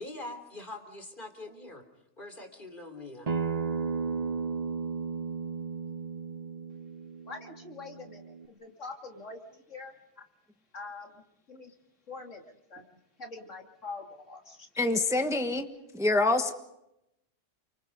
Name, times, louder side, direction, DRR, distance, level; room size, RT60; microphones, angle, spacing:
voice 1, 0.0-1.9 2.2-3.3, left 2 dB, 40° left, 6 dB, 3.6 m, -43 dB
Acoustic guitar, 3.3-8.5, right 5 dB, 35° right, 1.0 m, -34 dB
voice 2, 7.3-9.9 10.7-11.7 12.1-14.7, left 3 dB, 80° left, 2 dB, 3.0 m, -44 dB
voice 3, 14.8-15.7 15.9-16.5, left 2 dB, 5° right, 6 dB, 1.2 m, -26 dB
29.0 x 24.5 x 5.4 m, 0.85 s
omnidirectional pair, 1.3 m